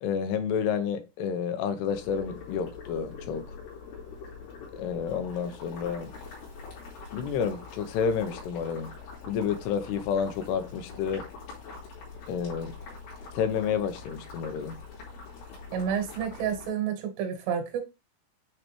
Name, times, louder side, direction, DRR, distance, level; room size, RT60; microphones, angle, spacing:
voice 1, 0.0-3.6 4.7-6.1 7.1-8.9 9.3-11.2 12.3-12.7 13.3-14.7, left 7 dB, 85° left, 2.9 m, -30 dB
Boiling, 1.9-16.7, left 4 dB, 70° left, 4.6 m, -44 dB
voice 2, 15.7-17.8, right 8 dB, 80° right, 3.4 m, -30 dB
8.8 x 3.2 x 3.3 m
omnidirectional pair, 4.7 m